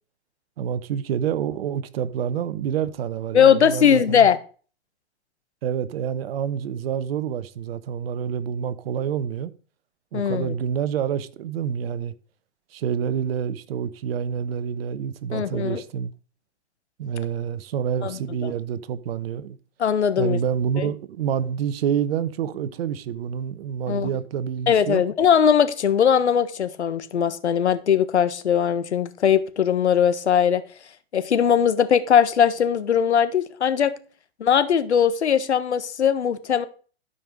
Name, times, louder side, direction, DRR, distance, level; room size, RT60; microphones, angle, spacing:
voice 1, 0.6-4.3 5.6-9.5 10.1-12.1 12.7-16.1 17.0-19.6 20.2-25.0, right 8 dB, 60° right, 1.1 m, -27 dB
voice 2, 3.3-4.4 10.1-10.5 15.3-15.8 18.0-18.5 19.8-20.4 20.8-20.9 23.9-24.1 24.7-30.6 31.1-33.9 34.4-36.7, left 8 dB, 85° left, 1.4 m, -20 dB
12.5 x 5.6 x 5.1 m
hypercardioid pair, 120°, 33 cm